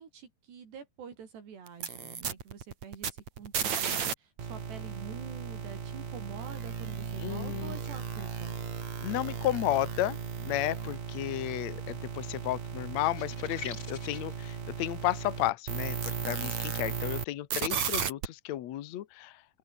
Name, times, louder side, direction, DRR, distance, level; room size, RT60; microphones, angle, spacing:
voice 1, 0.0-8.6, right 7 dB, 75° right, 6.0 m, -47 dB
sound 1, 1.7-4.1 4.4-17.2 17.5-18.3, right 7 dB, 45° right, 3.7 m, -35 dB
voice 2, 7.2-7.7 9.0-10.2 10.4-19.3, left 14 dB, 80° left, 1.6 m, -33 dB
sound 2, 13.0-14.3, left 6 dB, 40° left, 1.5 m, -44 dB
open air
omnidirectional pair, 4.9 m